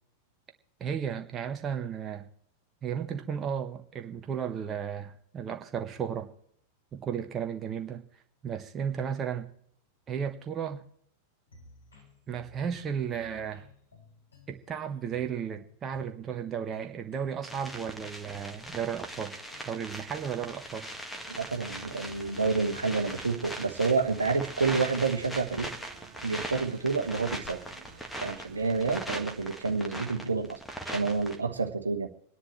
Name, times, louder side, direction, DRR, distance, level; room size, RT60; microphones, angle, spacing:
voice 1, 0.8-2.3 2.8-6.3 6.9-8.0 8.4-9.5 10.1-10.8 12.3-13.7 14.5-19.4 19.6-20.9, right 8 dB, 25° right, 6 dB, 1.1 m, -34 dB
sound 1, 11.5-23.4, left 4 dB, 75° left, 6.3 m, -57 dB
sound 2, 17.4-31.4, right 1 dB, 5° left, 1.8 m, -40 dB
voice 2, 21.4-25.7 26.2-27.6 28.2-32.1, right 4 dB, 75° right, 5 dB, 1.3 m, -29 dB
sound 3, 21.5-28.8, right 6 dB, 50° right, 1.9 m, -52 dB
26.5 x 10.5 x 3.2 m, 0.68 s
figure-of-eight pair, 90°, 0 cm